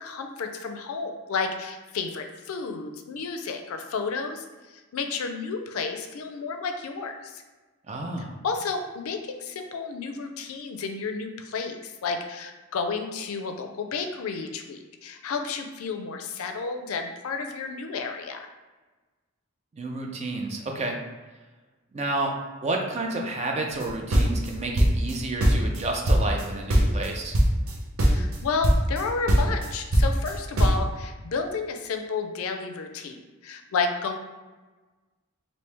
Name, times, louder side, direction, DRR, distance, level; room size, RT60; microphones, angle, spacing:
voice 1, 0.0-4.5 4.9-7.4 8.4-18.5 28.1-34.2, left 4 dB, 80° left, 5 dB, 0.4 m, -31 dB
voice 2, 7.9-8.3 19.7-21.0 21.9-22.3 22.6-27.4, right 2 dB, 30° right, 1 dB, 0.4 m, -30 dB
sound 1, 23.8-25.2 25.4-26.4 26.7-27.1 27.3-27.7 28.0-28.4 28.6-29.0 29.3-30.8, right 1 dB, 75° right, 0.7 m, -20 dB
3.0 x 2.6 x 3.3 m, 1.3 s
head